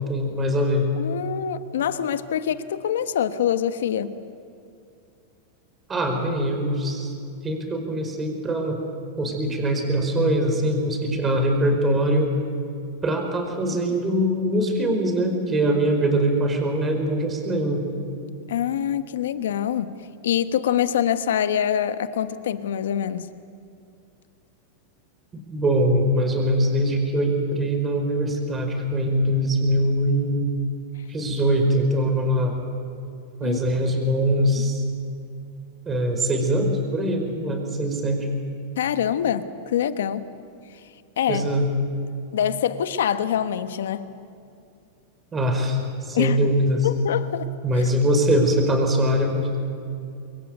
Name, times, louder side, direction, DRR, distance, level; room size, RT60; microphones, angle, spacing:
voice 1, 0.0-0.9 5.9-7.1 7.4-8.8 9.2-12.3 13.0-17.9 25.5-30.5 31.1-32.5 33.4-34.8 35.8-38.3 41.3-41.7 45.3-46.9 47.6-49.6, equal, 20° right, 4 dB, 5.0 m, -22 dB
voice 2, 1.0-4.1 18.5-19.9 20.2-23.3 33.4-33.6 38.8-40.2 41.2-41.5 42.3-44.1 46.1-46.4 46.8-47.8, left 9 dB, 85° left, 11 dB, 1.2 m, -25 dB
26.0 x 22.0 x 8.2 m, 2.6 s
supercardioid pair, 135°, 0 cm